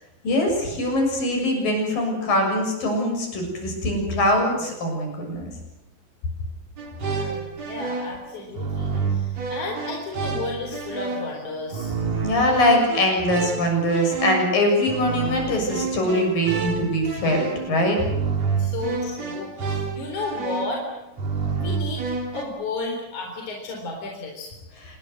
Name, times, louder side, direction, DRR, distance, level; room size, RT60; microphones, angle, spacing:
voice 1, 0.2-5.5 12.2-18.0, left 1 dB, 75° left, 2 dB, 8.6 m, -22 dB
sound 1, 6.8-22.4, right 4 dB, 50° right, 4.3 m, -29 dB
voice 2, 7.0-11.9 18.6-20.9 21.5-22.0 22.3-24.5, left 3 dB, 60° left, 1 dB, 5.2 m, -33 dB
27.0 x 21.0 x 7.9 m, 0.95 s
omnidirectional pair, 4.0 m